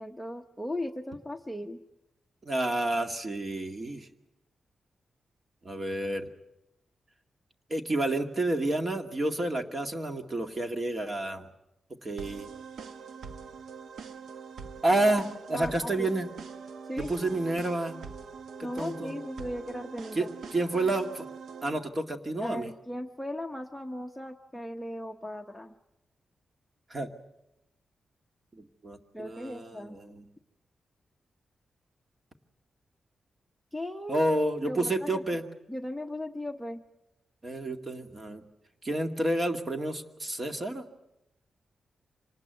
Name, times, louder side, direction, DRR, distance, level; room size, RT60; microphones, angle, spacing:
voice 1, 0.0-1.8 15.5-16.1 16.8-17.1 18.6-20.3 22.4-25.7 29.1-30.0 33.7-34.2 34.6-35.4 35.7-36.8, left 1 dB, ahead, 3 dB, 1.1 m, -37 dB
voice 2, 2.5-4.1 5.6-6.3 7.7-11.5 12.0-12.5 14.8-16.3 17.1-18.0 18.8-19.1 20.2-21.3 21.6-22.7 26.9-27.1 28.5-30.3 34.1-35.4 37.4-38.4 38.8-40.8, right 2 dB, 30° right, 6 dB, 2.1 m, -30 dB
sound 1, 12.2-21.8, right 5 dB, 80° right, 1.1 m, -43 dB
26.0 x 19.5 x 9.3 m, 0.90 s
cardioid pair, 105°, 0 cm